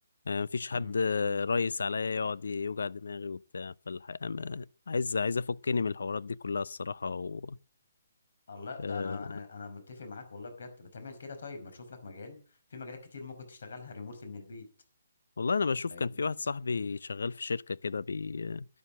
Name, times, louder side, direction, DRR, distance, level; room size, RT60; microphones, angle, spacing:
voice 1, 0.3-7.6 8.8-9.3 15.4-18.7, left 4 dB, 90° left, 0.6 m, -32 dB
voice 2, 8.5-14.7 15.9-16.2, left 4 dB, 65° left, 5.2 m, -44 dB
12.5 x 10.5 x 7.4 m
hypercardioid pair, 170°, 0 cm